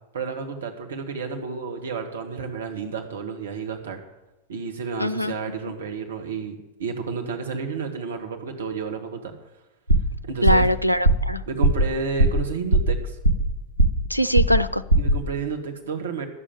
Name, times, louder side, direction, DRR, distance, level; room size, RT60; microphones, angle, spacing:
voice 1, 0.1-4.0 4.5-9.3 10.2-10.7 11.5-13.2 15.0-16.3, right 5 dB, 65° right, 4 dB, 1.9 m, -31 dB
voice 2, 5.0-5.3 10.4-11.4 14.1-14.8, equal, 90° left, 15 dB, 0.4 m, -22 dB
sound 1, 9.9-10.2 10.5-10.7 11.1-11.3 11.6-11.9 12.2-12.5 12.7-13.5 13.8-14.1 14.4-14.7 14.9-15.2, right 2 dB, 90° right, 1.1 m, -18 dB
11.0 x 7.1 x 9.1 m, 0.97 s
figure-of-eight pair, 90°, 0 cm